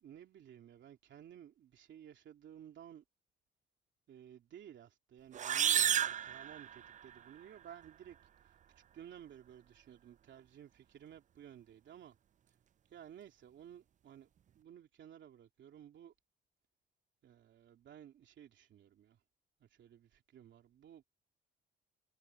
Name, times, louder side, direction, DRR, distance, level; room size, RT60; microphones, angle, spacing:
voice 1, 0.0-3.0 4.1-8.2 8.9-12.2 12.9-14.3 14.5-16.1 17.2-19.2 19.6-21.0, right 10 dB, 65° right, 3.1 m, -55 dB
sound 1, 5.3-7.2, right 9 dB, 40° right, 0.4 m, -32 dB
cardioid pair, 90°, 20 cm